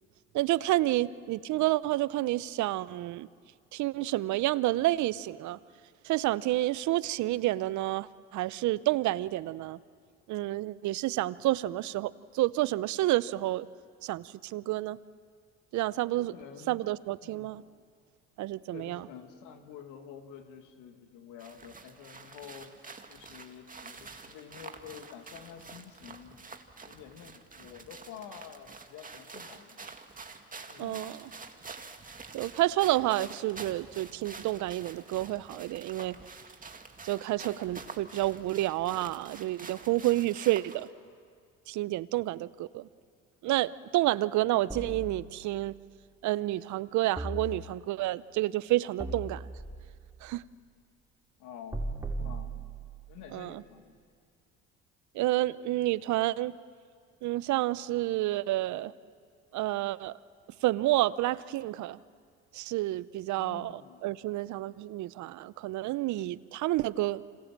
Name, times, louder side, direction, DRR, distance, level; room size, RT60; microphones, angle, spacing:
voice 1, 0.3-3.3 3.7-5.6 6.0-9.8 10.3-13.7 14.0-15.0 15.7-16.3 16.7-17.6 18.4-19.1 30.8-31.2 32.3-36.2 37.0-40.9 41.7-42.9 43.4-45.7 46.2-49.5 50.2-50.4 53.3-53.6 55.1-56.5 57.2-58.9 59.5-60.2 60.6-62.0 62.5-63.7 64.0-67.2, right 16 dB, 65° right, 18 dB, 0.7 m, -29 dB
voice 2, 16.2-16.9 17.2-17.6 18.7-22.7 23.1-26.4 26.8-29.8 30.7-31.4 44.2-44.3 51.4-51.9 52.2-52.6 53.1-54.0 63.3-64.1, left 8 dB, 75° left, 5 dB, 2.3 m, -49 dB
sound 1, 21.4-40.9, right 4 dB, 25° right, 2.2 m, -47 dB
sound 2, 44.7-45.8 47.2-48.1 49.0-50.1 51.7-53.1, right 2 dB, 10° right, 4.4 m, -38 dB
27.5 x 26.5 x 7.5 m, 2.2 s
supercardioid pair, 65°, 31 cm